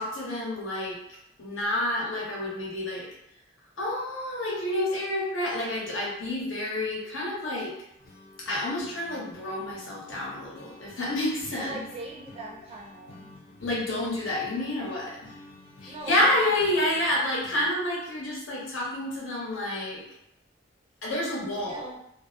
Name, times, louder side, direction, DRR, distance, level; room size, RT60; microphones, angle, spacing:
voice 1, 0.0-3.1 3.8-7.7 8.4-11.8 13.6-15.3 15.8-20.0 21.0-21.9, left 1 dB, 90° left, -4 dB, 0.8 m, -29 dB
sound 1, 8.0-17.6, left 1 dB, 50° left, 0.5 m, -51 dB
voice 2, 11.6-13.3 15.9-16.4 16.7-16.8 21.5-22.0, right 2 dB, 30° right, -2 dB, 0.4 m, -41 dB
2.3 x 2.0 x 2.6 m, 0.78 s
head